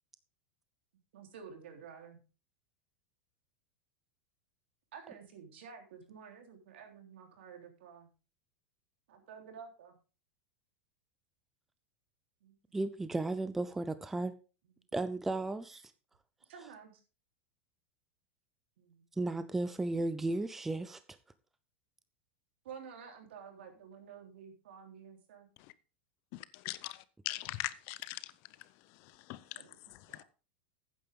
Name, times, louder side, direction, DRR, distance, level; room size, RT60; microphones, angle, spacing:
voice 1, 1.1-2.2 4.9-8.1 9.1-10.0 12.4-12.8 14.6-14.8 16.5-16.9 18.8-19.5 22.6-25.5 29.5-29.8 30.1-30.2, right 6 dB, 80° right, 3.5 m, -51 dB
voice 2, 12.7-14.3 14.9-15.8 19.2-21.0, right 2 dB, 5° right, 0.4 m, -34 dB
voice 3, 26.3-28.3 29.0-29.6 29.9-30.2, left 18 dB, 40° left, 0.6 m, -41 dB
12.5 x 9.2 x 3.6 m
supercardioid pair, 175°, 6 cm